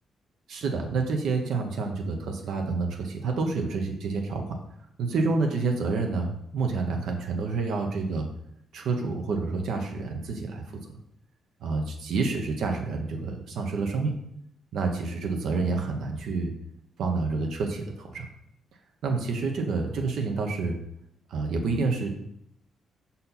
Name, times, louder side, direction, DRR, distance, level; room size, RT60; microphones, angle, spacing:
voice 1, 0.5-4.5 5.0-8.3 8.7-10.8 11.6-14.1 14.7-16.5 17.0-18.3 19.0-20.8 21.3-22.1, right 4 dB, 70° right, 3 dB, 0.9 m, -28 dB
5.5 x 4.2 x 4.1 m, 0.74 s
cardioid pair, 150°, 0 cm